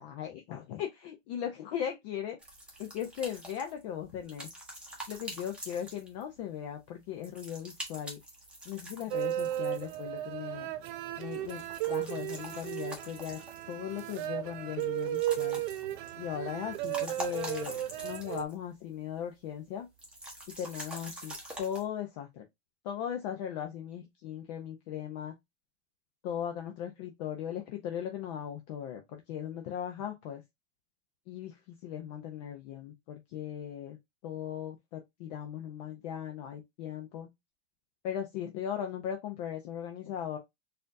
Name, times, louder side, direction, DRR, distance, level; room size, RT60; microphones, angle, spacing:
voice 1, 0.0-2.4 2.8-4.5 5.1-8.2 8.6-10.7 11.2-11.6 11.9-13.4 13.7-15.6 16.2-19.9 20.5-22.4 22.8-25.3 26.2-30.4 31.3-34.0 34.2-37.3 38.0-40.4, left 9 dB, 35° left, 0.6 m, -38 dB
sound 1, 2.4-6.4 7.2-10.3 11.2-13.9 14.8-16.2 16.6-18.6 18.9-19.0 20.0-21.8, right 1 dB, 5° right, 0.9 m, -45 dB
sound 2, 9.1-18.4, right 13 dB, 45° right, 0.5 m, -35 dB
4.1 x 2.6 x 2.5 m
supercardioid pair, 150°, 36 cm